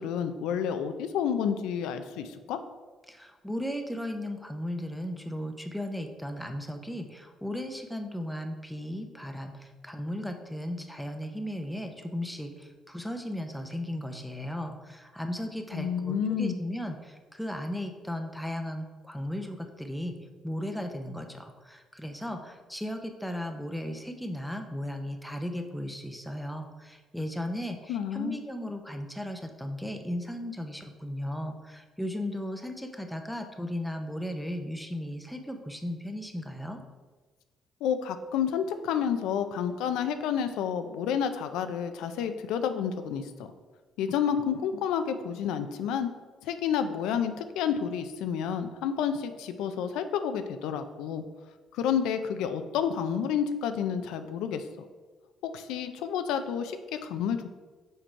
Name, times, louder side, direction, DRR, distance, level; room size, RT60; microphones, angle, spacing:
voice 1, 0.0-2.6 15.7-16.6 27.9-28.4 37.8-43.5 44.0-46.1 46.4-51.2 51.7-54.6 55.4-57.5, left 8 dB, 90° left, 9 dB, 0.5 m, -30 dB
voice 2, 3.1-20.2 20.4-36.8, equal, ahead, 5 dB, 0.7 m, -36 dB
6.5 x 4.5 x 4.5 m, 1.3 s
cardioid pair, 120°, 0 cm